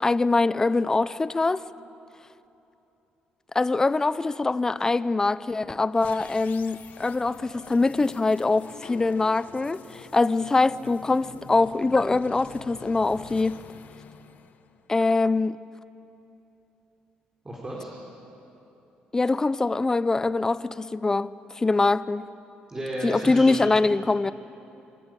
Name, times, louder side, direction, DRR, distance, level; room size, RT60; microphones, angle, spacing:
voice 1, 0.0-1.6 3.5-13.6 14.9-15.6 19.1-21.3 21.6-22.2 23.0-24.3, left 3 dB, 20° left, 16 dB, 0.5 m, -23 dB
sound 1, 5.9-15.1, left 7 dB, 60° left, 0.9 m, -47 dB
voice 2, 17.4-17.9 22.7-23.9, right 1 dB, 20° right, -4 dB, 3.6 m, -34 dB
27.0 x 12.5 x 8.9 m, 2.9 s
cardioid pair, 105°, 3 cm